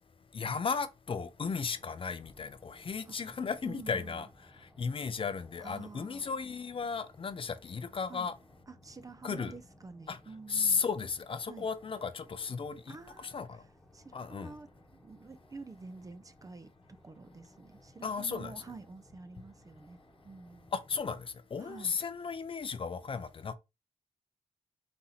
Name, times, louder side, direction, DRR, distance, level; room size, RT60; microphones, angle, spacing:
voice 1, 0.3-4.3 4.6-8.3 9.2-9.5 10.1-10.2 10.5-13.6 14.1-14.6 18.0-18.5 20.7-23.5, left 5 dB, 40° left, 0.5 m, -35 dB
sound 1, 1.4-21.2, left 1 dB, ahead, 1.1 m, -61 dB
voice 2, 3.6-4.2 5.6-6.3 8.1-8.3 8.7-10.8 11.4-11.7 12.9-16.7 17.0-20.0 20.2-20.7 21.6-22.0, right 4 dB, 25° right, 0.4 m, -49 dB
4.2 x 2.7 x 4.0 m
cardioid pair, 80°, 14 cm